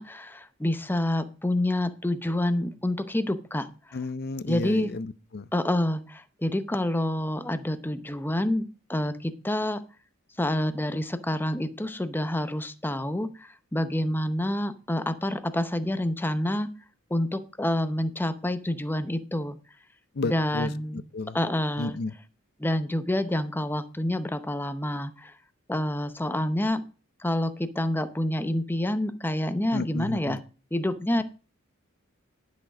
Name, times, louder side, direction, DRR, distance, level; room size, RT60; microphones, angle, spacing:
voice 1, 0.0-4.0 4.5-4.9 5.5-9.8 10.4-16.7 17.1-19.6 20.2-21.0 21.3-22.0 22.6-25.3 25.7-26.8 27.2-30.4 30.7-31.2, left 1 dB, 10° left, 0.7 m, -28 dB
voice 2, 3.9-5.5 20.1-21.4 21.8-22.1 29.7-30.4, left 3 dB, 50° left, 0.6 m, -32 dB
10.5 x 6.3 x 4.9 m
head